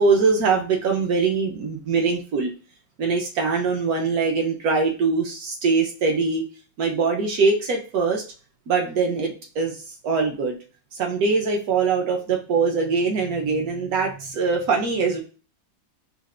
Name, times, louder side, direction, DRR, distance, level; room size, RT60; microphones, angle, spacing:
voice 1, 0.0-2.5 3.0-6.4 6.8-8.2 8.7-10.6 10.9-15.2, right 4 dB, 60° right, 1 dB, 1.1 m, -22 dB
6.4 x 2.5 x 2.5 m, 0.35 s
omnidirectional pair, 2.1 m